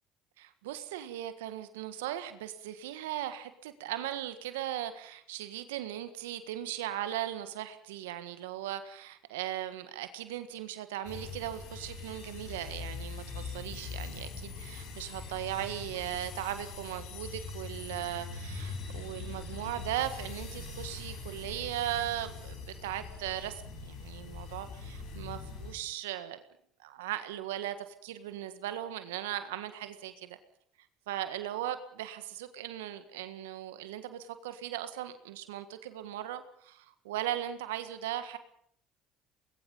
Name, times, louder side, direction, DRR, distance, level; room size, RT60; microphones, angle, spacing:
voice 1, 0.4-26.4 26.8-30.4 31.1-38.4, right 12 dB, 85° right, 10 dB, 1.6 m, -38 dB
sound 1, 11.0-25.7, left 4 dB, 70° left, 7.4 m, -42 dB
24.5 x 20.5 x 5.5 m, 0.63 s
hypercardioid pair, 65°, 0 cm